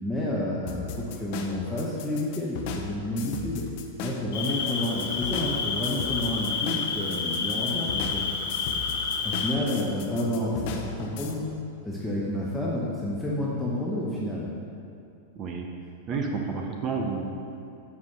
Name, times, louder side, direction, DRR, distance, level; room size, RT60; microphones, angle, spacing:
voice 1, 0.0-3.6 4.0-8.2 9.2-11.5 11.8-14.5 16.1-16.2, left 1 dB, 5° left, -6 dB, 0.8 m, -30 dB
sound 1, 0.7-11.3, left 5 dB, 50° left, 0.7 m, -37 dB
Cricket, 4.3-9.6, left 5 dB, 70° left, 1.4 m, -29 dB
voice 2, 15.3-15.7 16.1-17.3, right 5 dB, 30° right, 2 dB, 0.7 m, -30 dB
5.6 x 4.8 x 6.4 m, 2.7 s
supercardioid pair, 150°, 0 cm